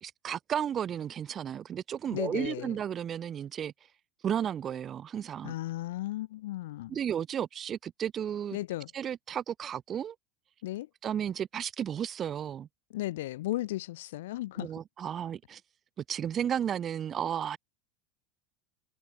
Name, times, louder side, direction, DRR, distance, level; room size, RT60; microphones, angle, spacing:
voice 1, 0.0-3.7 4.2-5.5 6.9-8.6 8.9-10.1 11.0-12.7 14.6-15.6 16.1-17.6, right 9 dB, 35° right, 1.2 m, -33 dB
voice 2, 2.1-2.8 5.4-7.0 8.5-8.9 10.6-10.9 12.9-14.7, left 16 dB, 65° left, 0.6 m, -35 dB
figure-of-eight pair, 75°, 0 cm